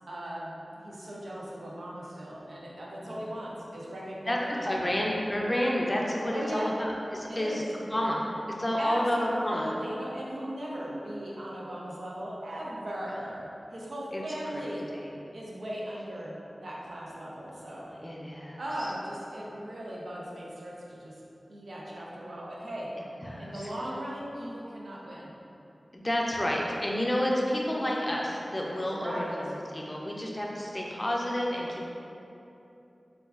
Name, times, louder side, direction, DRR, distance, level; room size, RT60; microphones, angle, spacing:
voice 1, 0.1-4.9 6.3-6.7 7.3-7.6 8.8-14.9 15.3-17.9 18.6-21.2 21.5-22.9 23.4-25.3 28.8-29.3, equal, 85° right, -5 dB, 0.5 m, -38 dB
voice 2, 4.3-7.6 7.9-8.2 8.6-9.7 14.1-14.2 14.9-15.1 18.0-18.6 23.2-23.7 25.9-29.1 29.7-31.9, left 1 dB, 30° left, -2 dB, 0.4 m, -30 dB
4.0 x 2.3 x 2.4 m, 2.8 s
wide cardioid pair, 55°, 0 cm